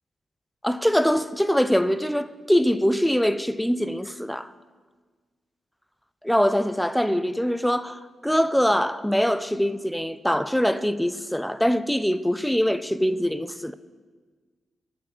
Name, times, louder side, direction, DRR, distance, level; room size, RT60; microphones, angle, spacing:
voice 1, 0.6-4.5 6.2-13.7, equal, 5° left, 0.3 m, -23 dB
8.4 x 4.6 x 5.1 m
supercardioid pair, 55°, 0 cm